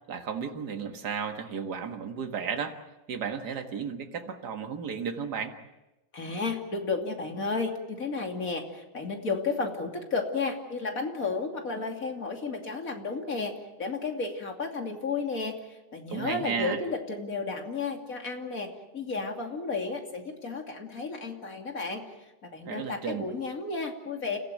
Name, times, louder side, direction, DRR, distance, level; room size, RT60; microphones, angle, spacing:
voice 1, 0.1-2.8 3.1-5.5 16.1-16.8 22.7-23.3, right 6 dB, 65° right, 5 dB, 2.3 m, -33 dB
voice 2, 6.1-22.0 22.4-24.4, left 4 dB, 50° left, 3 dB, 3.2 m, -33 dB
30.0 x 15.0 x 9.3 m, 1.0 s
omnidirectional pair, 1.9 m